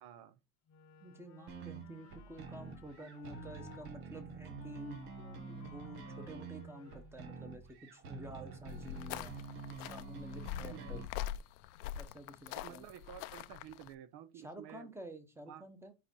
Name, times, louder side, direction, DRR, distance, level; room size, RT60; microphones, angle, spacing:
voice 1, 0.0-0.4 9.1-9.2 10.5-11.0 12.5-14.9 15.5-15.7, right 10 dB, 50° right, 1.0 m, -52 dB
Wind instrument woodwind instrument, 0.7-3.9 4.6-7.3, left 8 dB, 35° left, 1.0 m, -57 dB
voice 2, 1.0-9.3 9.9-11.0 11.9-12.9 14.3-15.9, right 1 dB, 5° right, 1.1 m, -50 dB
sound 1, 1.5-11.1, right 5 dB, 75° right, 1.9 m, -48 dB
sound 2, 8.7-13.9, left 12 dB, 75° left, 0.7 m, -43 dB
5.0 x 4.8 x 5.6 m
supercardioid pair, 135°, 47 cm